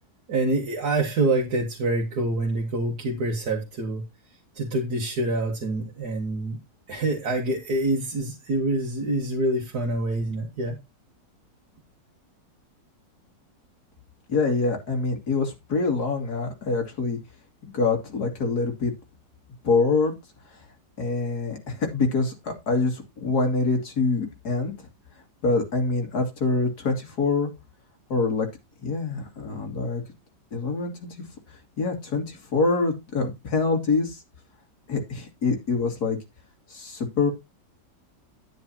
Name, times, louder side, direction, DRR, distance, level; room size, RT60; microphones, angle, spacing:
voice 1, 0.3-4.0 4.6-6.6 6.9-10.8, right 2 dB, 60° right, 2.1 m, -26 dB
voice 2, 14.3-17.2 17.7-18.9 19.6-20.1 21.0-24.9 25.4-27.5 28.1-28.5 28.8-30.0 30.5-30.9 31.8-34.2 34.9-36.2 36.7-37.3, left 3 dB, 60° left, 2.9 m, -25 dB
9.9 x 9.6 x 2.9 m
omnidirectional pair, 1.9 m